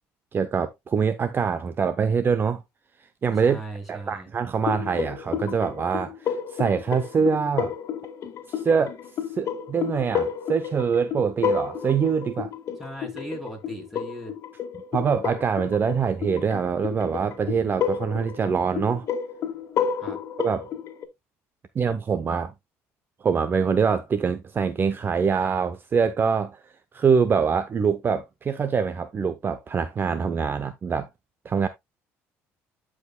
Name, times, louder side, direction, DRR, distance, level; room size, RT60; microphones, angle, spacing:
voice 1, 0.3-2.6 3.2-3.6 3.9-7.7 8.5-9.0 9.4-12.5 14.9-19.1 20.4-20.7 21.7-22.5 23.2-31.1 31.4-31.7, right 6 dB, 35° right, 0.7 m, -24 dB
voice 2, 3.3-4.3 12.8-14.3 20.0-20.2, right 1 dB, 5° right, 4.0 m, -38 dB
sound 1, 4.7-21.1, left 7 dB, 60° left, 1.6 m, -31 dB
12.0 x 5.1 x 2.3 m
supercardioid pair, 85°, 6 cm